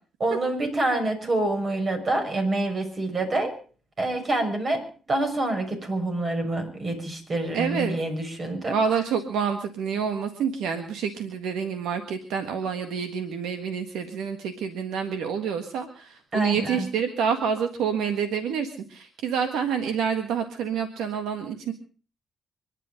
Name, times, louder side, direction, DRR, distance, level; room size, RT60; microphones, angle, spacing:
voice 1, 0.2-3.5 4.0-8.8 16.3-16.9, right 2 dB, 45° right, 5 dB, 6.4 m, -27 dB
voice 2, 7.5-8.0 8.7-21.7, right 7 dB, 85° right, 7 dB, 1.6 m, -28 dB
25.0 x 11.0 x 5.2 m, 0.41 s
supercardioid pair, 65°, 0 cm